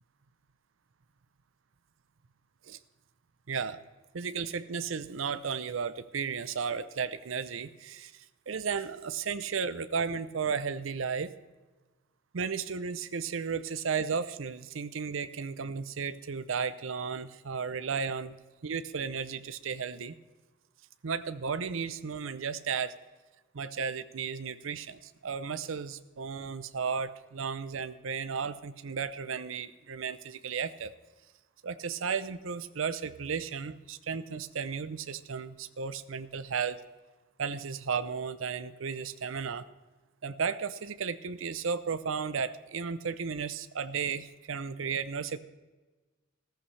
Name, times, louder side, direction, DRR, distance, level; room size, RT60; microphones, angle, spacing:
voice 1, 3.5-3.8 4.1-11.4 12.3-18.4 18.6-20.1 21.0-22.9 23.5-30.9 31.6-36.8 37.4-39.7 40.2-45.4, right 6 dB, 85° right, 13 dB, 0.6 m, -34 dB
15.5 x 14.0 x 3.3 m, 1.2 s
head